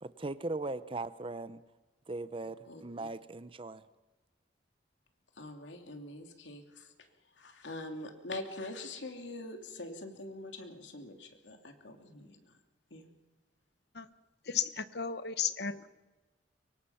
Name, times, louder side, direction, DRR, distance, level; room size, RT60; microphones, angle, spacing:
voice 1, 0.0-1.6 2.1-3.8, right 2 dB, 30° right, 13 dB, 0.8 m, -39 dB
voice 2, 2.7-3.1 5.4-6.9 7.4-12.5 12.9-13.1, left 2 dB, 85° left, 4 dB, 2.9 m, -44 dB
voice 3, 14.5-15.9, left 7 dB, 65° left, 12 dB, 1.2 m, -34 dB
24.0 x 23.5 x 5.8 m, 1.2 s
head